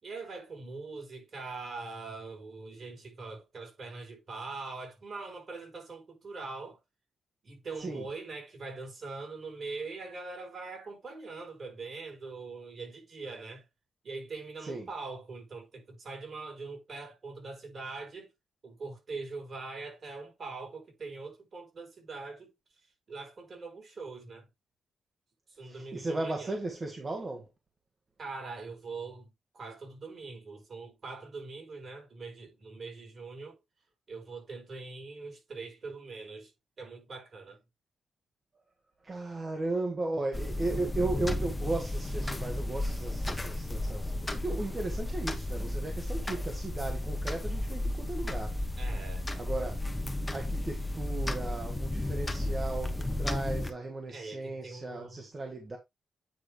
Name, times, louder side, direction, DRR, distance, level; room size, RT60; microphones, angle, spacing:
voice 1, 0.0-6.8 7.4-13.6 14.0-18.3 18.6-22.5 23.1-24.5 25.5-26.6 28.2-33.6 34.1-36.5 36.8-37.6 48.8-49.3 54.1-55.3, right 3 dB, 55° right, 4.7 m, -42 dB
voice 2, 25.6-27.4 39.0-48.6 49.3-49.7 50.3-55.8, right 2 dB, 35° right, 1.6 m, -36 dB
sound 1, 40.3-53.7, left 1 dB, 15° left, 1.2 m, -33 dB
9.2 x 3.2 x 4.9 m
cardioid pair, 80°, 0 cm